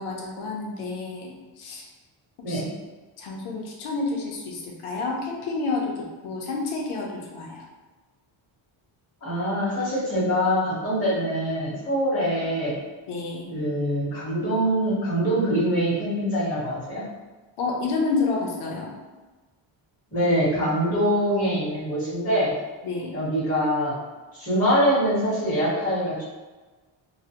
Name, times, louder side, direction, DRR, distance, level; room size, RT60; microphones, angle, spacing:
voice 1, 0.0-1.9 2.5-2.8 3.2-7.7 13.1-13.5 17.6-18.9 22.8-23.2, left 3 dB, 90° left, -1 dB, 0.8 m, -29 dB
voice 2, 9.2-12.8 13.5-17.0 20.1-22.5 23.1-24.0 24.4-26.2, equal, 30° left, -12 dB, 1.4 m, -24 dB
3.0 x 2.1 x 2.9 m, 1.2 s
cardioid pair, 170°, 48 cm